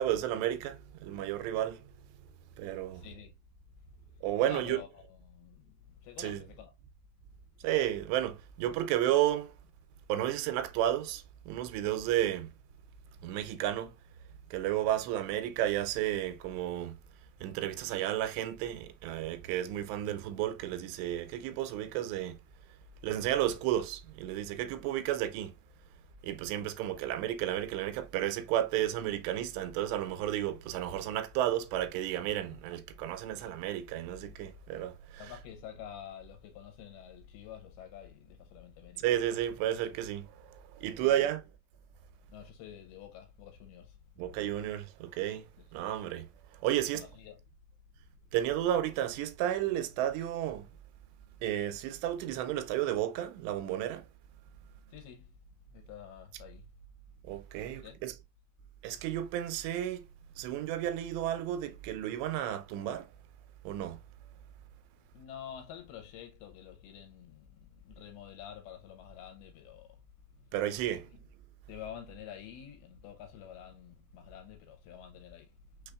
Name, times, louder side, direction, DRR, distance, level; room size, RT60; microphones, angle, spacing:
voice 1, 0.0-1.8 2.6-3.0 4.2-4.8 6.2-6.4 7.6-9.5 10.1-12.5 13.2-13.9 14.5-17.0 17.4-22.4 23.0-25.5 26.2-35.2 39.0-41.4 44.2-46.3 46.6-47.0 48.3-50.7 51.4-54.1 57.3-58.1 58.8-60.0 60.4-63.1 63.7-64.0 70.5-71.1, right 12 dB, 90° right, 2.8 m, -32 dB
voice 2, 2.9-3.4 4.0-6.7 35.2-39.0 41.0-41.3 42.3-44.0 46.9-47.4 54.9-55.3 55.7-56.7 57.7-58.0 65.1-70.0 71.7-75.6, left 9 dB, 80° left, 2.4 m, -48 dB
6.2 x 3.3 x 2.3 m
omnidirectional pair, 4.9 m